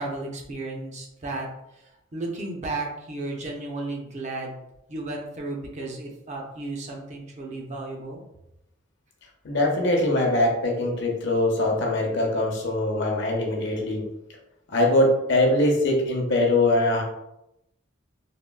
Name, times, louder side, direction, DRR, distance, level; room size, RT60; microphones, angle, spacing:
voice 1, 0.0-1.5 2.1-8.2, right 2 dB, 35° right, 0 dB, 0.5 m, -34 dB
voice 2, 9.4-14.0 14.7-17.0, left 1 dB, 65° left, 0 dB, 0.7 m, -22 dB
3.5 x 2.2 x 2.2 m, 0.85 s
head